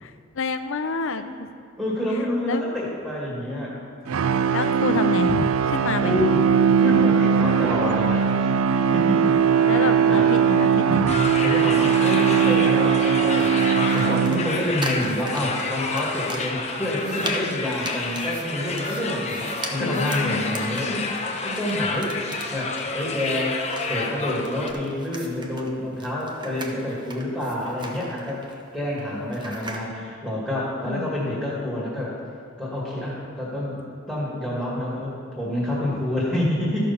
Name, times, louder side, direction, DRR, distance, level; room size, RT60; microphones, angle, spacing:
voice 1, 0.0-1.2 2.5-2.6 4.5-6.2 9.7-11.2 19.8-20.4 30.9-31.1, left 4 dB, 65° left, 9 dB, 0.6 m, -28 dB
voice 2, 1.8-3.8 6.0-6.4 6.8-8.5 8.8-9.3 9.7-10.3 11.4-21.1 21.4-22.2 22.5-23.6 23.8-32.1 32.6-33.8 34.1-36.9, left 1 dB, 5° right, -6 dB, 2.2 m, -28 dB
sound 1, 4.1-14.8, right 7 dB, 75° right, 0.4 m, -20 dB
sound 2, 11.1-24.7, left 3 dB, 30° left, 0.9 m, -30 dB
sound 3, 12.4-29.9, right 2 dB, 20° right, 0.9 m, -39 dB
12.5 x 6.5 x 5.5 m, 2.3 s
head